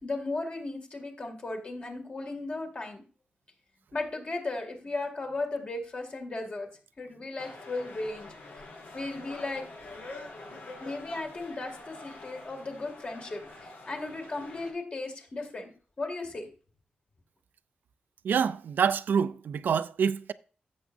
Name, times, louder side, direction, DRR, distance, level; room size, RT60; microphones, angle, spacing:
voice 1, 0.0-3.0 3.9-6.7 7.0-8.3 8.9-9.7 10.8-15.7 16.0-16.5, left 2 dB, 40° left, 2.3 m, -36 dB
sound 1, 7.4-14.7, left 2 dB, 75° left, 5.3 m, -46 dB
voice 2, 18.2-20.3, right 7 dB, 85° right, 0.5 m, -26 dB
14.0 x 7.2 x 2.6 m
wide cardioid pair, 150°, 3 cm